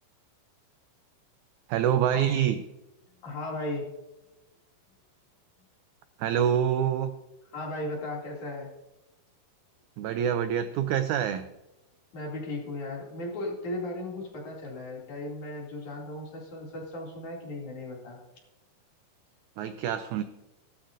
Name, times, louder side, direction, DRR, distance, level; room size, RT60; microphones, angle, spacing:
voice 1, 1.7-2.6 6.2-7.2 10.0-11.5 19.6-20.2, right 9 dB, 85° right, 10 dB, 1.7 m, -26 dB
voice 2, 3.2-3.9 7.5-8.7 12.1-18.2, left 2 dB, 60° left, -2 dB, 4.0 m, -36 dB
17.5 x 13.0 x 2.6 m, 0.99 s
omnidirectional pair, 4.0 m